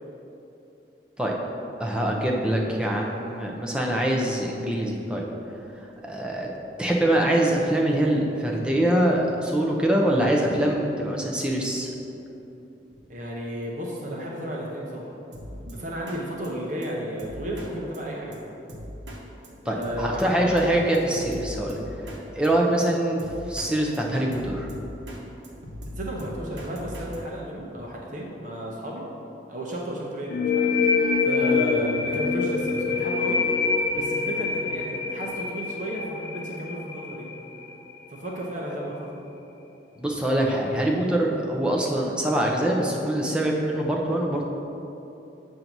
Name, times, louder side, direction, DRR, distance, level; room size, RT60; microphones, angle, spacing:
voice 1, 1.8-5.2 6.0-6.5 6.8-11.9 19.7-21.8 22.3-24.7 31.4-31.5 40.0-44.5, right 1 dB, 5° right, -2 dB, 0.5 m, -24 dB
voice 2, 13.1-15.1 15.5-18.5 19.6-20.6 22.4-22.5 25.9-29.1 29.5-30.7 30.9-33.5 33.9-37.3 38.1-39.3, equal, 45° right, -3 dB, 0.7 m, -33 dB
Drum kit, 15.3-15.7 16.1-16.2 16.4-16.5 16.8-16.9 17.2-17.7 17.9-18.0 18.3-18.4 18.7-19.2 19.4-19.5 19.8-20.7 20.9-22.2 22.4-22.5 22.8-22.9 23.2-23.7 23.9-25.2 25.4-27.2, equal, 80° right, 0.9 m, -39 dB
sound 1, 30.3-37.7, left 4 dB, 55° left, 0.5 m, -25 dB
7.4 x 2.7 x 5.8 m, 2.9 s
head